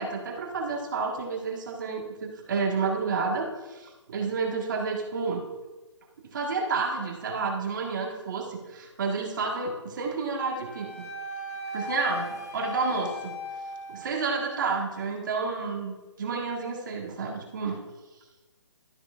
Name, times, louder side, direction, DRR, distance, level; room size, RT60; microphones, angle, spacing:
voice 1, 0.0-5.4 6.3-11.0 11.7-13.3 13.9-17.8, right 4 dB, 40° right, 0 dB, 1.5 m, -30 dB
Wind instrument woodwind instrument, 10.3-14.6, left 2 dB, 30° left, 1.2 m, -37 dB
12.5 x 6.2 x 2.5 m, 1.2 s
hypercardioid pair, 165°, 16 cm